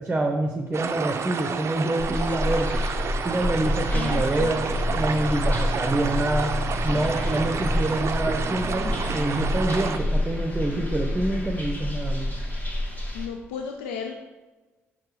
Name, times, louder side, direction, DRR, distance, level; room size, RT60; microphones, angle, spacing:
voice 1, 0.0-2.7 3.2-4.6 4.9-6.5 6.8-12.3, right 2 dB, 20° right, 2 dB, 0.8 m, -26 dB
sound 1, 0.7-10.0, right 6 dB, 40° right, 0.5 m, -31 dB
sound 2, 2.0-13.3, left 1 dB, 25° left, 1.6 m, -28 dB
voice 2, 3.9-5.0 13.1-14.1, left 6 dB, 70° left, 3 dB, 0.4 m, -34 dB
6.5 x 3.8 x 4.8 m, 1.2 s
figure-of-eight pair, 45°, 7 cm